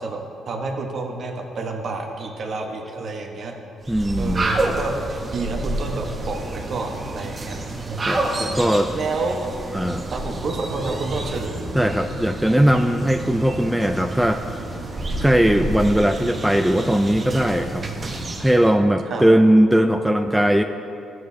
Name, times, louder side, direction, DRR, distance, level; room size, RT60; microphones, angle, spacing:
voice 1, 0.0-3.6 4.1-4.9 5.3-8.4 8.9-9.4 10.1-11.6 19.1-19.2, right 3 dB, 55° right, 2 dB, 1.1 m, -29 dB
sound 1, 3.8-18.7, right 2 dB, 30° right, 1.0 m, -29 dB
voice 2, 3.9-4.5 8.1-8.9 9.7-10.1 11.7-14.6 15.2-17.9 18.4-20.6, right 1 dB, 5° right, 6 dB, 0.3 m, -19 dB
13.5 x 7.6 x 2.7 m, 2.6 s
cardioid pair, 90°, 0 cm